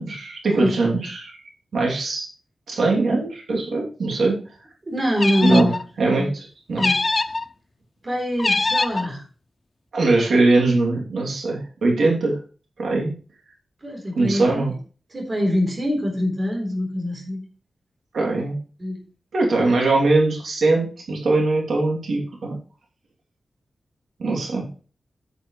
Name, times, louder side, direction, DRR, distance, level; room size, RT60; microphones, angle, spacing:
voice 1, 0.0-1.4 1.7-2.3 2.7-4.4 5.4-5.7 6.0-6.9 9.9-12.4 12.8-13.1 14.2-14.7 18.1-18.6 19.3-22.6 24.2-24.6, right 2 dB, 80° right, -1 dB, 3.0 m, -21 dB
voice 2, 4.9-5.8 6.2-6.3 6.7-7.0 8.0-9.2 13.8-14.6 15.1-17.4 18.8-19.0, left 1 dB, 30° right, 1 dB, 3.8 m, -24 dB
sound 1, 5.2-5.8 6.8-7.4 8.4-9.1, left 3 dB, 30° left, 0.5 m, -23 dB
9.4 x 9.3 x 3.2 m, 0.37 s
wide cardioid pair, 150°, 0 cm